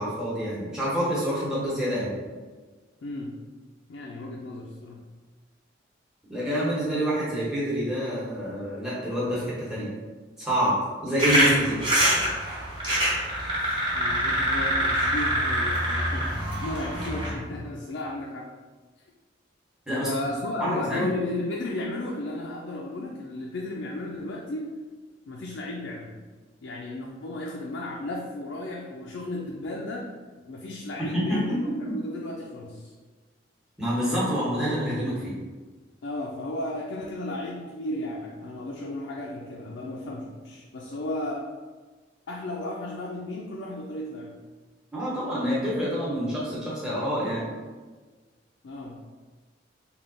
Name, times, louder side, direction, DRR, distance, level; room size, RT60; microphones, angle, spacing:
voice 1, 0.0-2.1 6.3-9.9 10.4-10.7 11.0-11.8 19.9-20.2 20.6-21.1 31.1-31.6 33.8-35.3 44.9-47.5, equal, 5° right, -8 dB, 1.0 m, -27 dB
voice 2, 3.0-3.4 3.9-5.1 13.9-18.5 19.9-24.7 25.3-26.2 26.6-30.1 30.5-32.9 36.0-41.5 42.3-44.4 48.6-49.0, left 1 dB, 70° left, -1 dB, 0.4 m, -34 dB
sound 1, 11.2-17.3, equal, 25° right, 1.0 m, -25 dB
3.4 x 2.3 x 3.9 m, 1.4 s
head